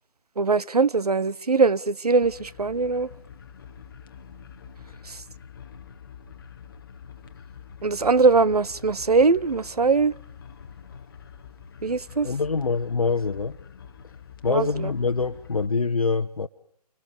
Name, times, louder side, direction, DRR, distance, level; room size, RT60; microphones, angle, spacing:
voice 1, 0.4-3.1 5.1-5.2 7.8-10.1 11.8-12.3 14.5-14.9, right 4 dB, 70° right, 0.9 m, -21 dB
sound 1, 2.2-15.7, left 7 dB, 35° left, 1.0 m, -46 dB
voice 2, 12.2-13.5 14.4-16.5, left 4 dB, 60° left, 1.0 m, -25 dB
28.5 x 25.5 x 5.1 m
figure-of-eight pair, 150°, 21 cm